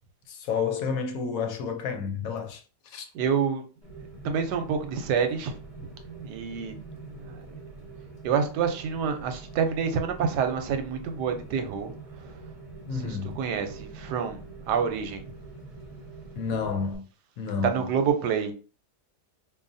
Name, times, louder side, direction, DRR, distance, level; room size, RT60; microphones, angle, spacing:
voice 1, 0.3-3.1 12.9-13.4 16.4-17.0 17.4-17.8, left 5 dB, 70° left, 1.0 m, -30 dB
voice 2, 3.1-3.6 4.2-5.5 6.1-6.7 7.1-7.4 8.2-11.9 12.9-14.4 14.7-15.2 17.6-18.5, right 6 dB, 85° right, 1.2 m, -27 dB
Rain, 3.8-17.0, right 3 dB, 25° left, 0.8 m, -44 dB
4.7 x 2.5 x 2.6 m
omnidirectional pair, 1.7 m